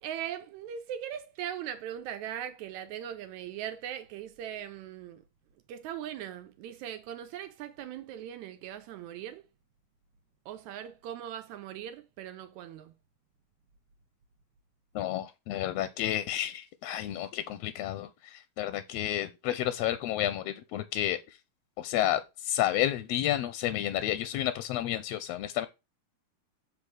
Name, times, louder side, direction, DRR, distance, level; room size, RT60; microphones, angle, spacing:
voice 1, 0.0-5.2 5.7-9.5 10.5-12.9, right 10 dB, 80° right, 2.0 m, -40 dB
voice 2, 14.9-21.4 21.8-25.7, left 12 dB, 80° left, 1.5 m, -31 dB
7.6 x 3.3 x 6.3 m
omnidirectional pair, 3.3 m